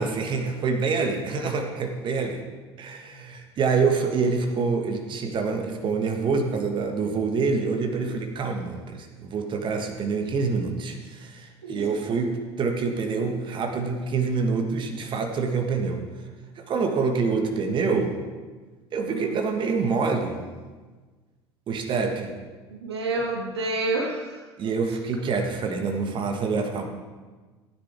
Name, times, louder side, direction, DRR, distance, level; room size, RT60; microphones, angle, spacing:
voice 1, 0.0-2.4 2.8-12.3 12.6-16.0 16.6-18.1 18.9-20.4 21.7-22.3 24.6-26.9, right 4 dB, 35° right, 4 dB, 1.6 m, -26 dB
voice 2, 19.1-19.4 22.8-24.3, right 2 dB, 75° right, 1 dB, 1.4 m, -28 dB
16.0 x 10.0 x 3.5 m, 1.4 s
figure-of-eight pair, 65°, 14 cm